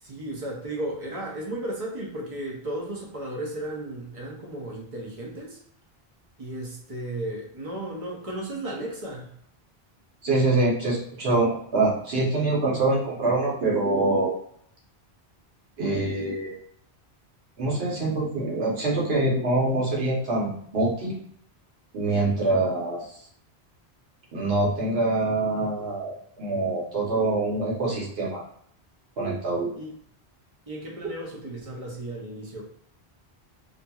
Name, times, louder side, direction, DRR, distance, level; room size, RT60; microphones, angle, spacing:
voice 1, 0.0-5.6 6.4-9.3 29.8-29.9 30.7-32.6, right 1 dB, 40° right, -2 dB, 0.7 m, -34 dB
voice 2, 10.2-14.3 15.8-16.5 17.6-21.2 21.9-23.0 24.3-28.4 29.2-29.7, right 2 dB, 70° right, -4 dB, 1.1 m, -25 dB
2.8 x 2.6 x 2.3 m, 0.65 s
omnidirectional pair, 1.1 m